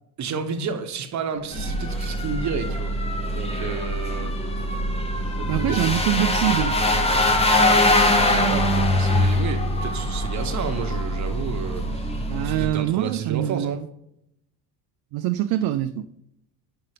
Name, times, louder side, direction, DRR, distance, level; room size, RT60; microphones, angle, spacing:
voice 1, 0.2-3.0 3.3-4.4 5.4-5.8 7.6-13.8, right 6 dB, 40° right, 1.1 m, -31 dB
sound 1, 1.3-12.9, right 3 dB, 30° left, 2.5 m, -41 dB
sound 2, 1.5-12.7, left 1 dB, 15° left, 0.9 m, -23 dB
voice 2, 5.5-6.8 12.3-13.9 15.1-16.1, right 13 dB, 60° right, 0.5 m, -24 dB
5.6 x 5.4 x 5.0 m
cardioid pair, 120°, 43 cm